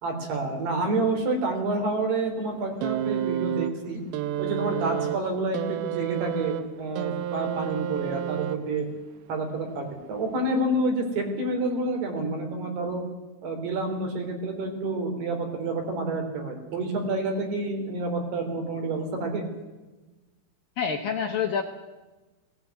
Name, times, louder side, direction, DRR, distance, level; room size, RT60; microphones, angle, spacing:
voice 1, 0.0-4.0 4.4-8.9 9.3-13.0 13.4-19.5, right 2 dB, 60° right, 4 dB, 5.5 m, -28 dB
sound 1, 2.8-9.0 10.0-10.1, right 11 dB, 75° right, 2.3 m, -31 dB
voice 2, 20.8-21.6, left 6 dB, 70° left, 4 dB, 2.2 m, -27 dB
19.5 x 18.0 x 9.4 m, 1.2 s
omnidirectional pair, 5.4 m